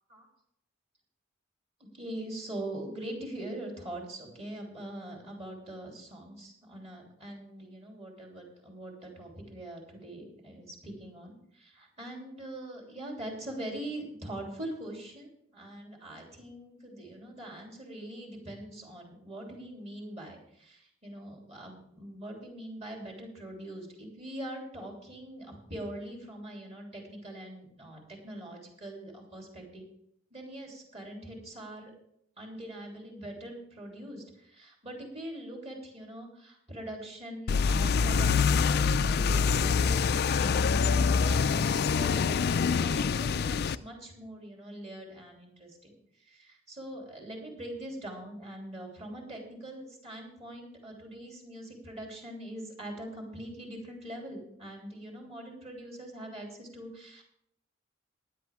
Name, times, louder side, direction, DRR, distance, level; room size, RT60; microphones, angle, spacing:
voice 1, 1.8-29.8 30.3-31.9 32.4-57.2, right 1 dB, 30° right, 0 dB, 3.2 m, -43 dB
sound 1, 37.5-43.8, left 5 dB, 50° left, 0.4 m, -25 dB
15.5 x 11.0 x 3.6 m, 0.74 s
head